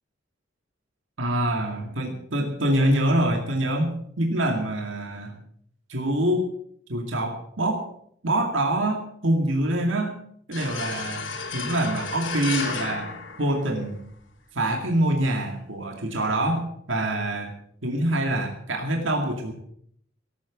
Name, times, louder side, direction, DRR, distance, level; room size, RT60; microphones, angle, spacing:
voice 1, 1.2-5.3 5.9-6.5 6.9-7.9 8.2-10.2 10.5-13.1 13.4-14.0 14.5-17.5 17.8-19.5, right 1 dB, 75° right, 3 dB, 2.3 m, -25 dB
sound 1, 10.5-14.1, left 5 dB, 75° left, 3.0 m, -33 dB
17.5 x 9.2 x 7.3 m, 0.65 s
head